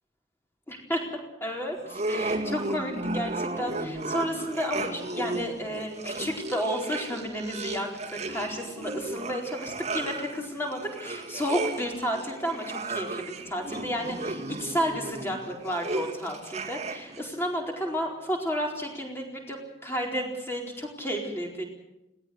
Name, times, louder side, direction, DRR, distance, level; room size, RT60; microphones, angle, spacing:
voice 1, 0.7-1.1 1.4-21.6, equal, 10° left, 0 dB, 4.4 m, -32 dB
sound 1, 1.8-17.2, right 2 dB, 35° right, 2.2 m, -34 dB
21.5 x 18.5 x 8.0 m, 0.93 s
head